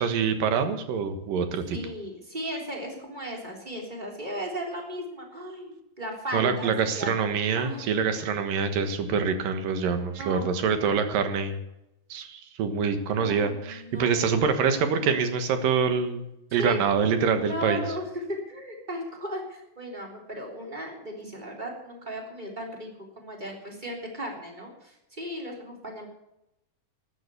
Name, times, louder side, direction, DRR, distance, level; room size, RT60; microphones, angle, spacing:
voice 1, 0.0-1.8 6.3-11.5 12.1-16.2 16.5-17.8, right 6 dB, 75° right, 8 dB, 3.1 m, -25 dB
voice 2, 1.7-7.9 10.1-10.5 13.2-14.4 16.6-16.8 17.4-22.9 23.1-26.1, equal, 15° right, 0 dB, 3.4 m, -36 dB
13.0 x 9.8 x 8.4 m, 0.84 s
omnidirectional pair, 4.0 m